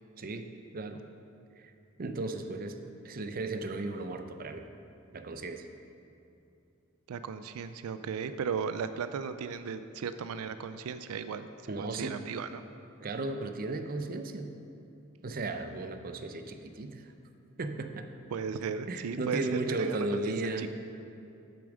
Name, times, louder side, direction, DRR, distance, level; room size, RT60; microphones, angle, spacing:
voice 1, 0.2-0.5 0.7-1.0 1.6-1.7 2.0-2.8 3.0-4.6 5.1-5.7 11.7-12.2 13.0-14.5 15.2-17.1 17.6-18.1 18.9-20.7, right 2 dB, 45° right, 7 dB, 0.6 m, -35 dB
voice 2, 7.1-11.5 11.8-12.6 18.3-19.5 19.8-20.7, right 6 dB, 90° right, 11 dB, 0.4 m, -36 dB
8.4 x 7.0 x 6.2 m, 2.7 s
head